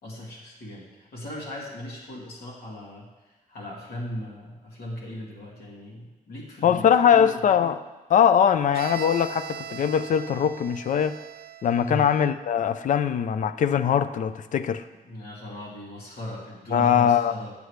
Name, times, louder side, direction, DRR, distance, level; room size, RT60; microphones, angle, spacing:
voice 1, 0.0-7.4 11.8-12.1 15.0-17.5, left 1 dB, 85° left, -4 dB, 2.4 m, -37 dB
voice 2, 6.6-7.8 8.1-11.2 11.6-14.8 16.7-17.3, left 8 dB, 55° left, 12 dB, 0.4 m, -21 dB
Bowed string instrument, 8.7-12.5, right 10 dB, 85° right, 0.4 m, -40 dB
9.6 x 6.8 x 3.2 m, 1.1 s
cardioid pair, 125°, 16 cm